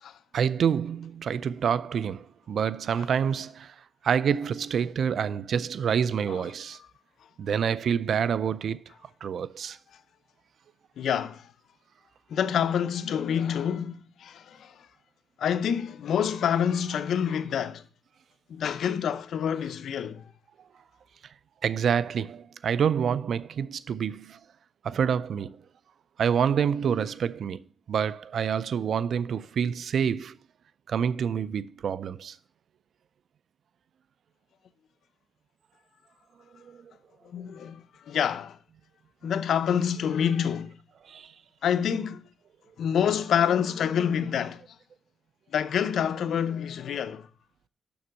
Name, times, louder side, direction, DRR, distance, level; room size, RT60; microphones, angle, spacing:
voice 1, 0.3-3.7 4.0-6.8 7.4-8.8 9.2-9.8 21.6-24.4 24.8-25.6 26.2-27.6 27.9-30.4 30.9-32.4 36.7-36.9 41.1-41.3, right 7 dB, 70° right, 0.4 m, -27 dB
voice 2, 11.0-11.5 12.3-14.9 15.4-17.8 18.5-20.2 37.2-38.6 39.2-40.7 41.6-42.2 42.8-44.6 45.5-47.3, left 8 dB, 85° left, 0.6 m, -27 dB
7.0 x 6.1 x 6.2 m
cardioid pair, 95°, 0 cm